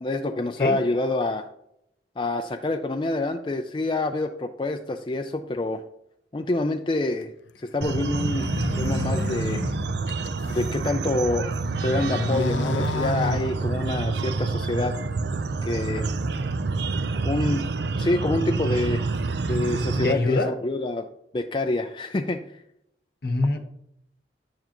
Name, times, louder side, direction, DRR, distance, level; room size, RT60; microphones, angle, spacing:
voice 1, 0.0-1.5 2.2-5.8 6.3-8.5 8.8-9.6 10.5-11.5 11.8-15.0 15.6-16.1 17.2-17.7 18.0-19.1 19.5-21.1 21.3-22.6, left 2 dB, 25° left, 0.4 m, -27 dB
sound 1, 7.8-20.1, right 3 dB, 70° right, 0.6 m, -27 dB
sound 2, 8.1-10.8 11.3-14.1, left 3 dB, 80° left, 0.5 m, -31 dB
voice 2, 20.0-20.6 23.2-23.6, left 2 dB, 55° left, 1.0 m, -23 dB
10.5 x 9.0 x 3.0 m
head